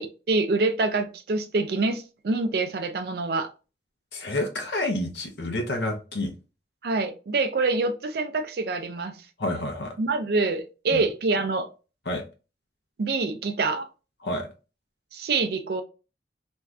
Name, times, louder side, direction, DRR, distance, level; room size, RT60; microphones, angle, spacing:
voice 1, 0.0-3.5 6.8-9.2 10.0-11.7 13.0-13.9 15.1-15.8, right 3 dB, 60° right, 0.4 m, -26 dB
voice 2, 4.1-6.3 9.4-9.9 10.9-11.0 12.1-12.2 14.2-14.5, left 1 dB, 75° left, 0.7 m, -29 dB
2.6 x 2.4 x 3.2 m
head